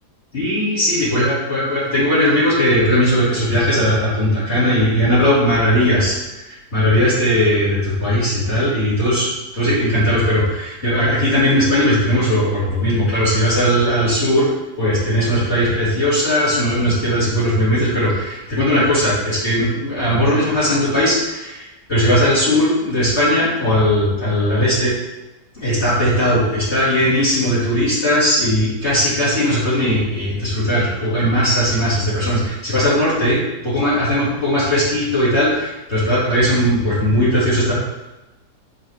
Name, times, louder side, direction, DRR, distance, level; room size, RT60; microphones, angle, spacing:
voice 1, 0.3-9.3 9.5-14.5 14.8-24.9 25.5-37.7, equal, 40° left, -9 dB, 3.2 m, -18 dB
6.7 x 6.5 x 4.8 m, 1.0 s
omnidirectional pair, 1.8 m